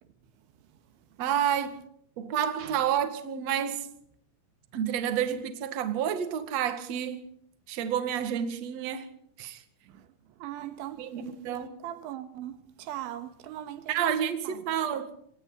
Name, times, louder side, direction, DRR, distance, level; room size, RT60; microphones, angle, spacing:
voice 1, 0.0-1.2 2.6-2.9 9.8-14.1 14.4-14.8, right 12 dB, 85° right, 3.9 m, -42 dB
voice 2, 1.2-1.8 2.2-3.9 4.7-7.3 7.7-9.1 9.4-9.6 11.0-11.8 13.9-15.1, right 9 dB, 45° right, 2.5 m, -29 dB
27.0 x 25.0 x 4.0 m
omnidirectional pair, 5.2 m